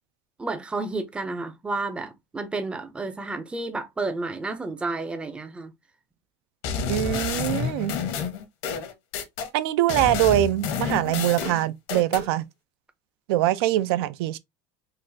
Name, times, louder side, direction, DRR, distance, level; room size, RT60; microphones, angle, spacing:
voice 1, 0.4-5.7, right 3 dB, 10° right, 0.4 m, -31 dB
sound 1, 6.6-9.5 9.9-12.3, left 6 dB, 65° left, 0.9 m, -29 dB
voice 2, 6.9-8.0 9.5-12.4 13.3-14.4, right 14 dB, 90° right, 0.4 m, -23 dB
3.9 x 2.4 x 2.6 m
cardioid pair, 150°, 12 cm